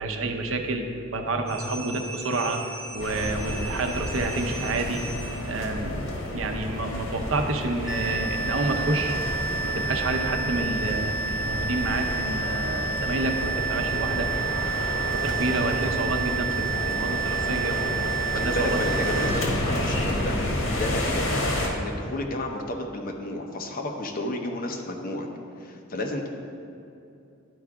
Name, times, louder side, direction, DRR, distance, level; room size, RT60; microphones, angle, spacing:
voice 1, 0.0-2.6 2.9-5.0 5.5-6.1 6.3-9.1 9.6-14.3 15.1-17.8 18.3-18.8, right 2 dB, 85° right, 5 dB, 0.7 m, -29 dB
sound 1, 1.5-5.7, right 2 dB, 30° right, 1.5 m, -39 dB
sound 2, 3.0-21.7, left 1 dB, 80° left, 1.4 m, -30 dB
sound 3, 7.9-19.3, right 7 dB, ahead, 0.5 m, -30 dB
voice 2, 18.3-25.3 25.6-26.3, left 1 dB, 45° left, 2 dB, 0.8 m, -32 dB
11.0 x 4.7 x 3.6 m, 2.7 s
head